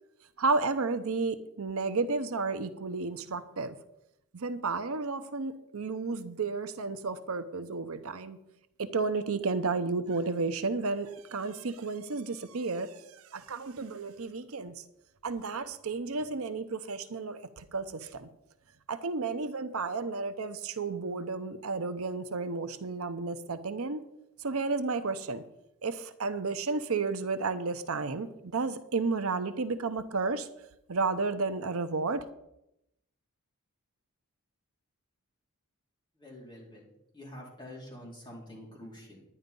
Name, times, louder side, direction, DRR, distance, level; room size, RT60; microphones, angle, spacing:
voice 1, 0.4-3.8 4.3-8.4 8.8-14.8 15.2-18.3 18.9-24.0 24.4-25.4 25.8-30.5 30.9-32.2, right 4 dB, 70° right, 11 dB, 0.7 m, -32 dB
voice 2, 36.2-36.9 37.1-39.2, left 1 dB, 20° left, -3 dB, 4.0 m, -47 dB
11.0 x 9.9 x 5.3 m, 0.83 s
head